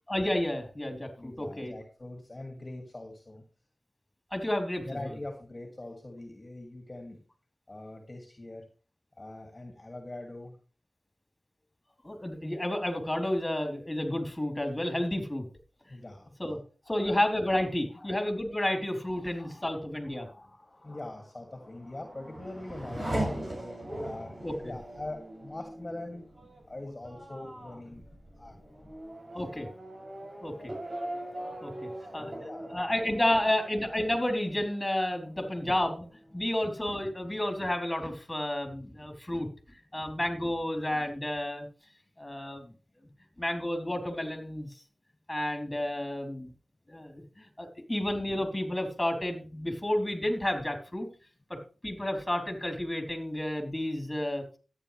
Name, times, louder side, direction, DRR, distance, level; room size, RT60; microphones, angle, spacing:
voice 1, 0.1-1.7 4.3-4.9 12.0-15.4 16.4-16.6 16.9-20.3 24.4-24.7 29.3-29.7 30.4-30.7 31.6-32.3 32.6-36.1 36.3-39.5 39.9-41.7 42.2-42.7 43.4-44.7 45.3-46.5 46.9-51.1 51.8-54.4, left 1 dB, 20° left, 4 dB, 4.0 m, -31 dB
voice 2, 1.2-3.4 4.8-7.2 7.7-8.6 9.2-10.5 15.9-16.3 16.8-17.1 17.9-18.3 19.2-26.2 26.6-29.6 30.2-30.4 31.0-32.8 36.4-36.5, left 2 dB, 35° left, 3 dB, 2.7 m, -44 dB
Race car auto racing / Accelerating revving vroom, 21.6-34.8 35.2-35.9, right 1 dB, 45° right, 7.7 m, -40 dB
13.5 x 9.7 x 3.4 m, 0.36 s
cardioid pair, 45°, 0 cm